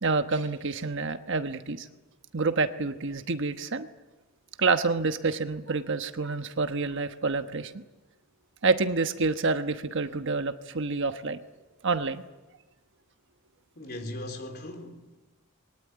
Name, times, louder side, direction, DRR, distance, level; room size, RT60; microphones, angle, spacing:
voice 1, 0.0-1.9 2.3-3.9 4.6-7.8 8.6-11.4 11.8-12.2, right 4 dB, 60° right, 1.2 m, -28 dB
voice 2, 13.8-15.2, left 1 dB, 50° left, 3.7 m, -39 dB
22.5 x 19.0 x 9.4 m
head